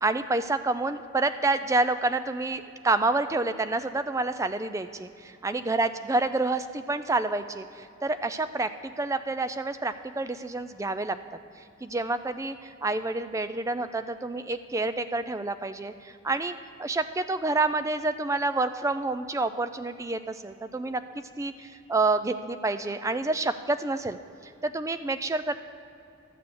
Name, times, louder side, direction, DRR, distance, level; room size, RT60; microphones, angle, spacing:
voice 1, 0.0-11.2 11.8-24.2 24.4-25.5, right 2 dB, 15° right, 11 dB, 0.3 m, -28 dB
12.5 x 6.8 x 6.8 m, 2.7 s
head